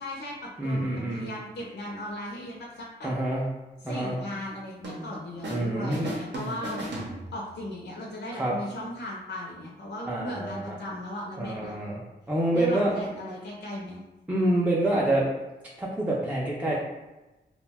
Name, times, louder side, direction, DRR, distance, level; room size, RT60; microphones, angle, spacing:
voice 1, 0.0-3.1 3.8-6.8 7.3-11.8 12.5-14.0, left 1 dB, 65° left, -3 dB, 0.5 m, -37 dB
voice 2, 0.6-1.3 3.0-3.5 3.8-4.2 5.5-6.1 8.4-8.5 10.1-10.8 11.4-12.0 12.3-12.9 14.3-15.2 15.8-16.8, right 1 dB, 5° right, -5 dB, 0.4 m, -26 dB
sound 1, 4.8-5.6 5.9-7.7, right 1 dB, 70° right, 0.6 m, -36 dB
2.4 x 2.1 x 3.3 m, 1.1 s
wide cardioid pair, 105°, 19 cm